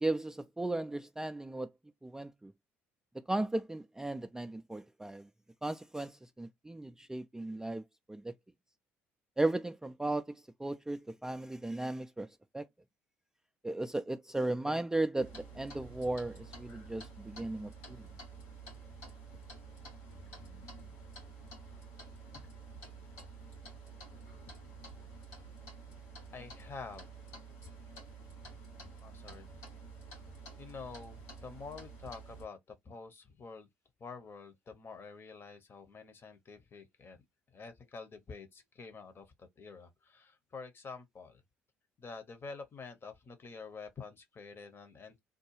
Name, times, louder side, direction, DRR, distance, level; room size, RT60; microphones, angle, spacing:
voice 1, 0.0-1.7 2.0-2.5 3.3-5.3 5.6-7.8 8.1-8.3 9.4-12.3 12.5-12.7 13.6-18.1, right 2 dB, 10° right, 0.3 m, -36 dB
Clock, 15.2-32.4, right 3 dB, 75° left, 2.3 m, -50 dB
voice 2, 26.3-27.1 29.0-29.5 30.6-32.6 32.8-33.7 34.0-37.2 37.5-41.4 42.0-45.2, left 4 dB, 35° left, 0.9 m, -48 dB
3.7 x 2.2 x 3.1 m
figure-of-eight pair, 55°, 7 cm